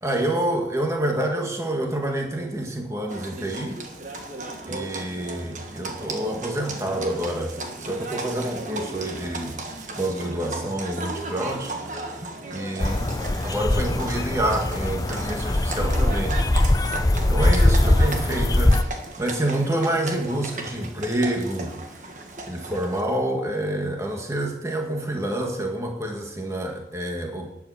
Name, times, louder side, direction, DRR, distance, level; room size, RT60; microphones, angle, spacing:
voice 1, 0.0-3.8 4.6-9.6 10.0-11.7 12.5-13.0 13.4-16.4 17.2-18.8 19.2-21.7 22.5-27.5, right 1 dB, 15° right, 2 dB, 1.8 m, -27 dB
Livestock farm animals working animals, 3.1-23.0, right 2 dB, 45° right, 1.6 m, -35 dB
sound 1, 12.8-18.8, left 1 dB, 20° left, 0.5 m, -21 dB
12.0 x 8.9 x 7.0 m, 0.89 s
head